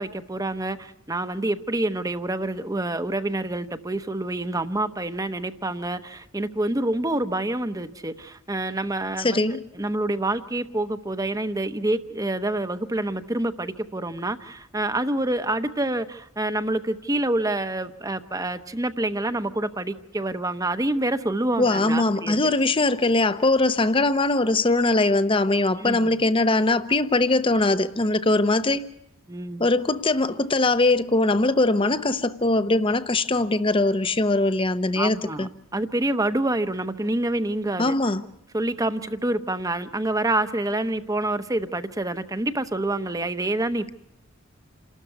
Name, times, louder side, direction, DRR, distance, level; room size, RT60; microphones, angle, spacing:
voice 1, 0.0-22.4 25.8-26.1 29.3-29.7 35.0-37.9 38.5-43.9, right 1 dB, 15° right, 0.9 m, -27 dB
voice 2, 9.2-9.6 21.6-28.9 29.6-35.5 37.8-38.2, left 2 dB, 25° left, 0.8 m, -21 dB
28.0 x 13.0 x 9.5 m
head